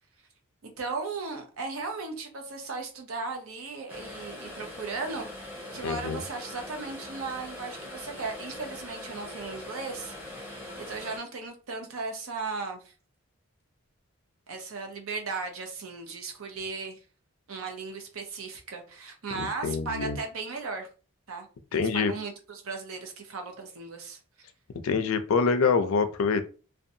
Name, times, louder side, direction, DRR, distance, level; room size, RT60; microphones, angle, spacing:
voice 1, 0.8-5.3 5.7-12.9 14.5-17.0 17.5-20.9 21.3-21.5 21.7-24.2, right 4 dB, 80° right, 0.7 m, -36 dB
sound 1, 3.9-11.2, left 1 dB, 10° right, 0.8 m, -42 dB
voice 2, 5.8-6.2 19.3-20.2 21.7-22.1 24.8-26.5, left 5 dB, 75° left, 0.4 m, -25 dB
2.6 x 2.2 x 2.6 m
head